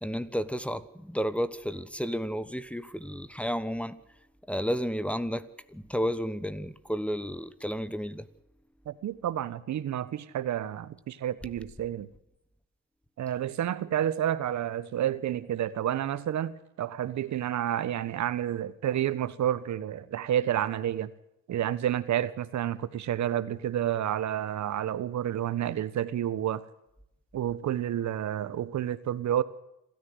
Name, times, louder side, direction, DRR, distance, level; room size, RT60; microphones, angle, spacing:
voice 1, 0.0-4.0 4.5-8.3, equal, 5° left, 1.2 m, -32 dB
voice 2, 8.9-12.1 13.2-21.1 21.5-26.6 27.3-29.4, right 11 dB, 65° right, 1.3 m, -30 dB
26.5 x 13.5 x 8.0 m
cardioid pair, 90°, 30 cm